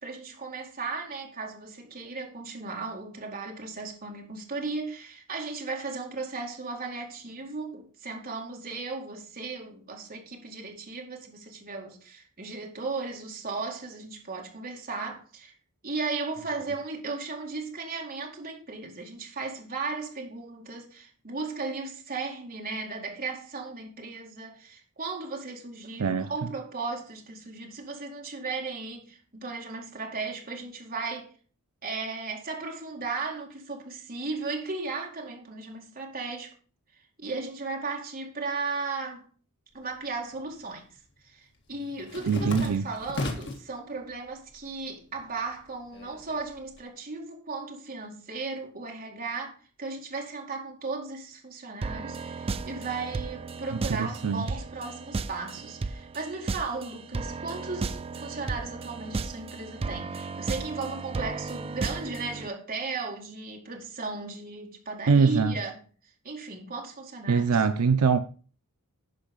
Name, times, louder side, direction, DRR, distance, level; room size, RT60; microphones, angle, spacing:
voice 1, 0.0-15.5 15.8-31.3 31.8-36.5 37.2-39.3 39.7-40.9 41.2-65.8 66.2-67.5, right 4 dB, 40° right, 2.3 m, -36 dB
voice 2, 26.0-26.3 42.3-42.8 53.7-54.5 65.1-65.5 67.3-68.2, right 5 dB, 80° right, 0.5 m, -23 dB
sound 1, 39.8-40.6 40.9-43.7 44.2-44.8 45.1-46.8, left 2 dB, 55° left, 1.8 m, -37 dB
sound 2, 51.8-62.5, right 3 dB, 25° right, 0.3 m, -35 dB
10.5 x 5.5 x 5.3 m
head